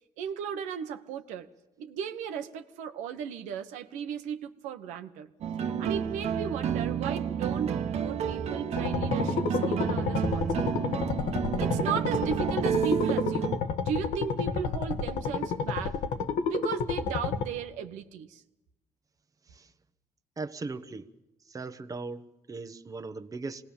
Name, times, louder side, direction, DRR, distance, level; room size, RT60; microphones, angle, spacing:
voice 1, 0.2-1.5 1.8-5.3 5.8-10.7 11.6-16.0 16.5-18.4, right 7 dB, 90° right, 7 dB, 1.2 m, -36 dB
sound 1, 5.4-13.6, right 8 dB, 65° right, 1.4 m, -30 dB
sound 2, 8.8-17.4, left 5 dB, 80° left, 1.6 m, -30 dB
voice 2, 20.4-21.1 21.5-23.6, right 3 dB, 30° right, 10 dB, 1.2 m, -38 dB
25.5 x 19.0 x 7.2 m, 0.97 s
cardioid pair, 80°, 12 cm